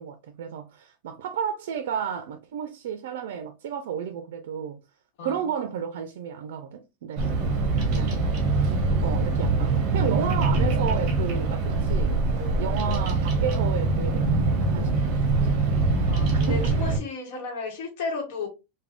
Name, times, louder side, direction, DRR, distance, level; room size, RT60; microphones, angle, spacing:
voice 1, 0.0-4.8 5.2-7.3 7.8-8.3 9.0-12.1 12.6-15.1 15.3-15.7 16.3-16.6, right 8 dB, 80° right, 0.4 m, -32 dB
Bird vocalization bird call bird song, 7.2-17.0, right 3 dB, 45° right, 0.8 m, -23 dB
voice 2, 16.1-18.5, left 3 dB, 60° left, 1.0 m, -33 dB
3.4 x 2.2 x 2.3 m
supercardioid pair, 165°, 0 cm